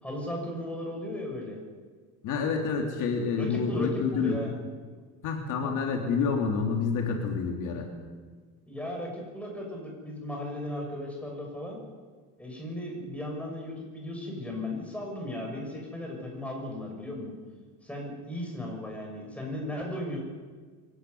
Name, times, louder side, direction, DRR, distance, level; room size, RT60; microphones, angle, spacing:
voice 1, 0.0-1.6 3.4-4.5 8.7-11.8 12.4-17.3 17.8-20.2, left 1 dB, 5° left, -1 dB, 6.7 m, -36 dB
voice 2, 2.2-4.4 5.2-7.9, left 5 dB, 60° left, 2 dB, 3.6 m, -28 dB
23.5 x 17.0 x 9.7 m, 1.5 s
cardioid pair, 155°, 34 cm